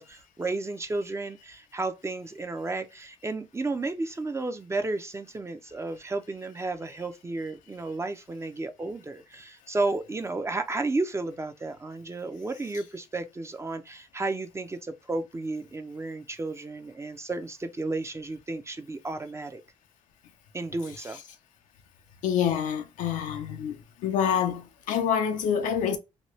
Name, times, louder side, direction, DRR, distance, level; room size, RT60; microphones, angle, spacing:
voice 1, 0.0-19.6 20.5-21.2, right 3 dB, 20° right, 0.5 m, -33 dB
voice 2, 22.2-23.8 24.0-26.0, left 8 dB, 85° left, 0.6 m, -26 dB
2.9 x 2.3 x 3.0 m
cardioid pair, 75°, 13 cm